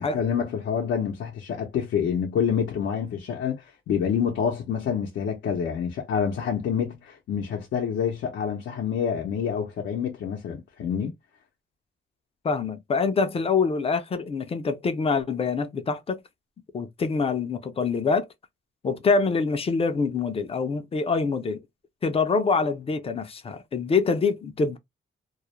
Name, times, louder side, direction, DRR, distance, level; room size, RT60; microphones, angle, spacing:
voice 1, 0.0-11.1, left 7 dB, 75° left, 0.6 m, -27 dB
voice 2, 12.4-16.2 16.7-18.3 18.8-21.6 22.0-24.8, left 4 dB, 30° left, 0.4 m, -25 dB
2.3 x 2.0 x 2.9 m
cardioid pair, 120°, 19 cm